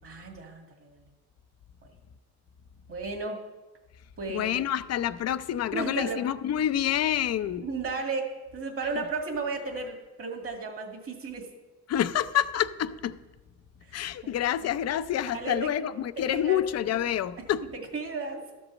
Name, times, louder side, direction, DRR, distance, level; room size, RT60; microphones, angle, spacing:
voice 1, 0.0-1.1 2.9-3.4 4.2-4.5 5.7-6.2 7.6-11.5 13.9-14.0 15.2-15.9 16.3-16.6 17.7-18.5, right 4 dB, 50° right, 2 dB, 2.2 m, -34 dB
voice 2, 4.3-7.7 11.9-13.2 13.9-17.6, left 11 dB, 55° left, 13 dB, 0.6 m, -28 dB
13.0 x 5.4 x 7.2 m, 1.1 s
cardioid pair, 90°, 30 cm